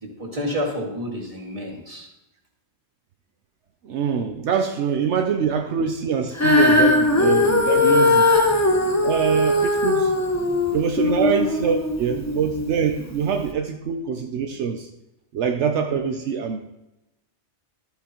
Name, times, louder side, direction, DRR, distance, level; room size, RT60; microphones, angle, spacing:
voice 1, 0.0-2.1, equal, 30° right, -3 dB, 2.1 m, -29 dB
voice 2, 3.8-8.4 9.0-10.1 10.7-14.9 15.3-16.6, right 6 dB, 80° right, 4 dB, 1.0 m, -24 dB
Female singing, 6.4-12.7 13.4-13.5, left 2 dB, 15° left, 1.0 m, -19 dB
13.0 x 8.2 x 3.0 m, 0.93 s
omnidirectional pair, 1.2 m